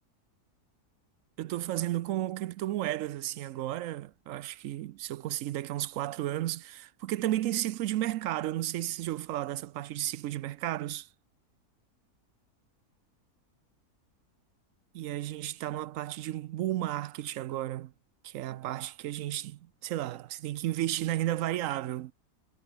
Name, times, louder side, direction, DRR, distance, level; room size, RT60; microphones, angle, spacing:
voice 1, 1.4-11.1 14.9-17.9 18.2-22.1, right 14 dB, 70° right, 0.9 m, -33 dB
omnidirectional pair, 1.6 m